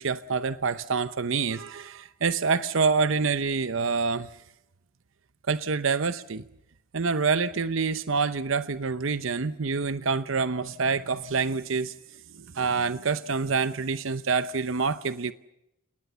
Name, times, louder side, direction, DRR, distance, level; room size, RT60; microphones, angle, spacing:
voice 1, 0.0-4.3 5.5-6.4 6.9-11.9 12.3-15.3, right 5 dB, 65° right, 13 dB, 0.8 m, -27 dB
29.5 x 19.0 x 6.9 m, 0.86 s
head